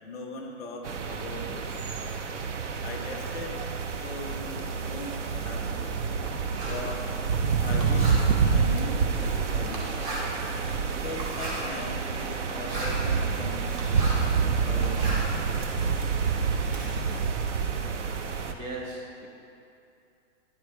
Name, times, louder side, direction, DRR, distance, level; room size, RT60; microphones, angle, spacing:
voice 1, 0.0-1.8 2.8-6.0 6.6-7.0 7.6-8.2 8.5-10.0 10.9-13.8 14.2-15.4, left 2 dB, ahead, -11 dB, 0.3 m, -40 dB
sound 1, 0.8-18.5, right 5 dB, 65° right, 0.8 m, -28 dB
Writing, 4.1-14.4 14.7-16.9, right 1 dB, 40° right, 1.9 m, -39 dB
voice 2, 18.4-19.3, right 2 dB, 85° right, -1 dB, 1.6 m, -38 dB
11.0 x 4.7 x 5.1 m, 2.6 s
hypercardioid pair, 145°, 38 cm